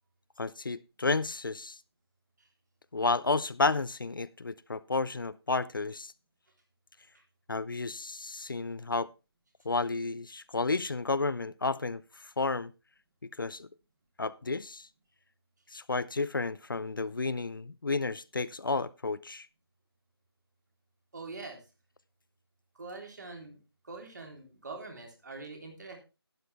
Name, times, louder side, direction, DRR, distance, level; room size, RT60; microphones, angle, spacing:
voice 1, 0.4-1.8 2.9-6.1 7.5-9.1 9.6-12.7 13.4-13.7 14.2-14.9 15.7-19.5, left 3 dB, 55° left, 0.5 m, -31 dB
voice 2, 21.1-21.6 22.8-23.6 23.8-26.0, right 3 dB, 45° right, 3.4 m, -44 dB
12.0 x 10.5 x 3.4 m
figure-of-eight pair, 165°, 13 cm